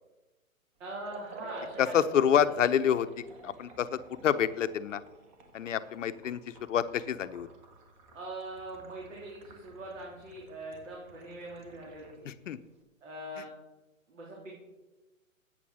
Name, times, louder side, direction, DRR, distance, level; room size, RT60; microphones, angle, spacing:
voice 1, 0.8-2.5 8.1-12.3 13.0-13.5 14.1-14.6, right 1 dB, 65° right, -3 dB, 3.4 m, -42 dB
Liquid, 1.0-12.2, right 1 dB, 35° right, 1.8 m, -51 dB
voice 2, 1.8-3.1 3.4-3.9 4.2-5.0 5.5-6.4 6.7-7.5 12.3-12.6, left 9 dB, 60° left, 12 dB, 0.8 m, -27 dB
8.7 x 8.4 x 6.2 m, 1.1 s
hypercardioid pair, 145°, 41 cm